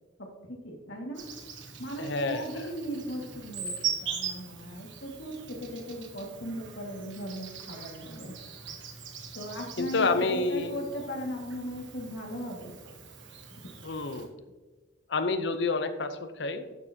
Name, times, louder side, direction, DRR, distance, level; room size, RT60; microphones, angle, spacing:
voice 1, 0.5-1.3 1.8-8.3 9.3-12.7 13.5-13.6, equal, 90° left, 1 dB, 1.9 m, -38 dB
Insect, 1.1-14.3, right 7 dB, 80° right, 1.3 m, -41 dB
voice 2, 2.0-2.7 9.8-10.8 13.8-14.3 15.1-16.8, left 3 dB, 65° left, 10 dB, 0.7 m, -29 dB
11.5 x 6.7 x 2.8 m, 1.3 s
head